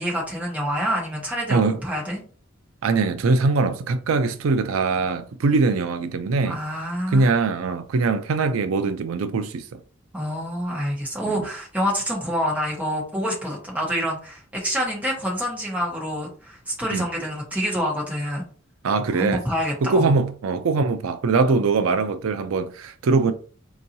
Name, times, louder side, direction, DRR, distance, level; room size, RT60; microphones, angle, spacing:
voice 1, 0.0-2.2 6.4-7.3 10.1-18.4 19.1-20.1, equal, 5° right, 1.3 m, -27 dB
voice 2, 2.8-6.6 7.1-9.8 11.2-11.5 16.9-17.1 18.8-19.4 19.8-23.3, right 4 dB, 85° right, 0.4 m, -22 dB
4.5 x 2.9 x 2.6 m
head